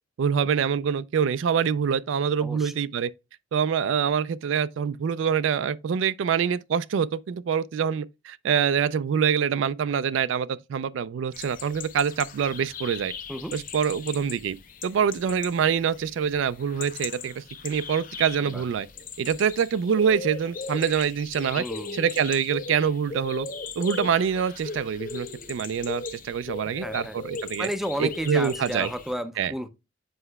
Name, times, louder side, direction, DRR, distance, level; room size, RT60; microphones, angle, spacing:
voice 1, 0.2-3.1 3.5-13.1 13.5-14.6 14.8-18.9 19.2-21.6 21.9-23.5 23.8-27.7 28.0-28.9 29.4-29.5, right 7 dB, 75° right, 0.3 m, -25 dB
voice 2, 2.4-2.7 13.3-13.5 18.4-18.6 21.6-22.0 26.6-27.2 27.6-29.7, equal, ahead, 0.4 m, -33 dB
sound 1, 11.3-29.1, left 4 dB, 45° left, 0.7 m, -39 dB
7.8 x 5.4 x 2.2 m
head